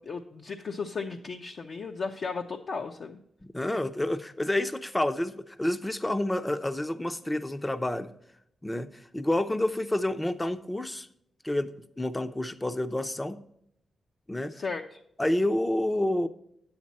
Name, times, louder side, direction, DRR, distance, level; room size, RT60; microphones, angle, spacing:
voice 1, 0.0-3.2 14.5-15.0, left 4 dB, 50° left, 2 dB, 0.8 m, -35 dB
voice 2, 3.4-8.1 8.6-11.1 11.4-13.4 14.3-14.5 15.2-16.3, left 1 dB, 10° left, 10 dB, 0.7 m, -29 dB
10.5 x 8.8 x 4.2 m, 0.74 s
cardioid pair, 110°, 0 cm